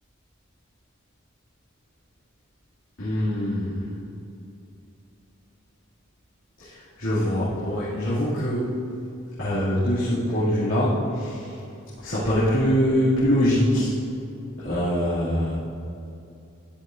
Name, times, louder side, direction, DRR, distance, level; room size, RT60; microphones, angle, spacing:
voice 1, 3.0-3.9 6.6-8.8 9.4-11.5 12.0-13.9 14.6-15.5, equal, 85° left, -12 dB, 2.4 m, -23 dB
13.0 x 10.5 x 2.5 m, 2.7 s
head